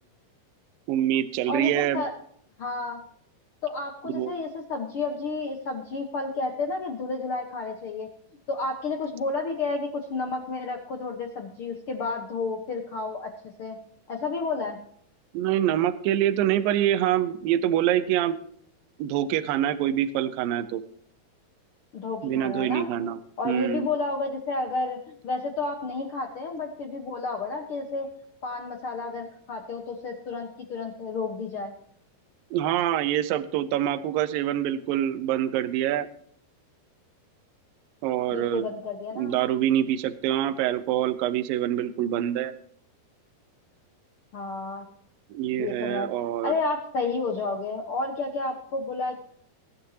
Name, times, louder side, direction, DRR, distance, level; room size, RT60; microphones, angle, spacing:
voice 1, 0.9-2.0 4.0-4.3 15.3-18.4 19.0-20.8 22.2-23.9 32.5-36.1 38.0-38.7 39.2-42.5 45.3-46.6, right 11 dB, 70° right, 10 dB, 2.4 m, -25 dB
voice 2, 1.5-2.1 2.6-3.0 3.6-8.1 8.5-13.3 13.6-13.8 14.1-14.8 21.9-22.9 23.4-28.1 28.4-31.7 38.3-39.3 44.3-44.8 45.6-46.1 46.4-49.2, left 3 dB, 75° left, 4 dB, 1.2 m, -31 dB
21.5 x 11.0 x 2.9 m, 0.64 s
omnidirectional pair, 4.5 m